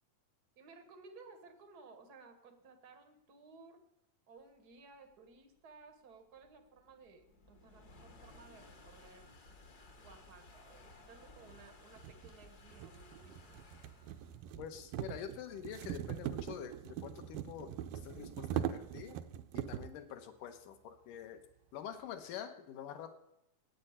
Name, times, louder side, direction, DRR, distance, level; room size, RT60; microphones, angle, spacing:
voice 1, 0.6-3.8 4.3-9.3 10.0-13.7, right 4 dB, 60° right, 7 dB, 1.0 m, -58 dB
sound 1, 4.7-18.1, left 2 dB, 50° left, 1.2 m, -60 dB
sound 2, 11.2-11.3 12.0-20.0, right 11 dB, 85° right, 2.4 m, -42 dB
voice 2, 14.6-19.2 19.5-21.5 21.7-23.2, left 9 dB, 75° left, 8 dB, 2.6 m, -46 dB
14.5 x 9.1 x 8.7 m, 0.88 s
omnidirectional pair, 3.9 m